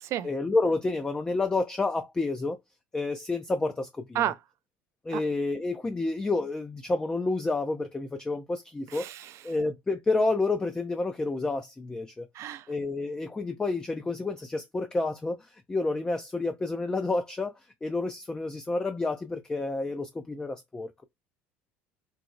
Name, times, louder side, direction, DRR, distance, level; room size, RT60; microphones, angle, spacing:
voice 1, 0.2-2.6 2.9-4.2 5.1-9.1 9.4-12.3 12.7-21.0, left 3 dB, 15° left, 0.4 m, -29 dB
voice 2, 8.9-9.3 12.3-12.7, right 11 dB, 55° right, 0.4 m, -31 dB
4.0 x 2.0 x 2.5 m
supercardioid pair, 100°, 6 cm